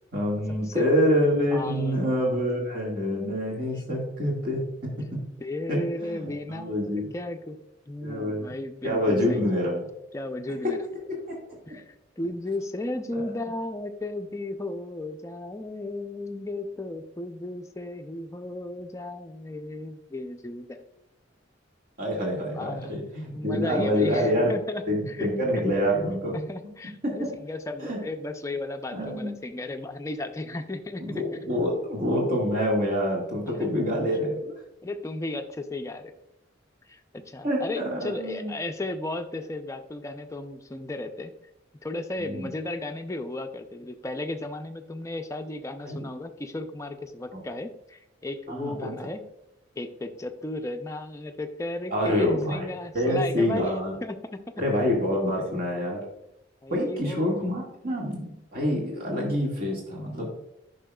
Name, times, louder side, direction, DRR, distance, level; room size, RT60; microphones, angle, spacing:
voice 1, 0.1-4.6 5.7-7.1 8.0-8.5 8.8-9.9 11.1-11.4 13.1-13.3 22.0-24.5 24.9-26.4 27.0-27.1 27.8-28.0 28.9-29.3 31.0-34.4 37.4-38.5 42.2-42.5 45.9-46.0 47.3-47.4 48.5-48.9 51.9-53.9 54.6-56.0 56.7-60.3, equal, 50° right, -2 dB, 1.9 m, -26 dB
voice 2, 1.5-2.6 5.4-7.6 7.9-9.4 10.1-10.8 11.7-20.8 22.5-23.0 23.3-25.3 25.6-25.7 26.3-31.2 33.5-33.7 34.8-36.1 36.9-41.3 41.8-49.2 49.8-54.4 56.6-57.3, left 2 dB, 15° left, 5 dB, 0.5 m, -35 dB
10.0 x 5.5 x 2.3 m, 0.83 s
head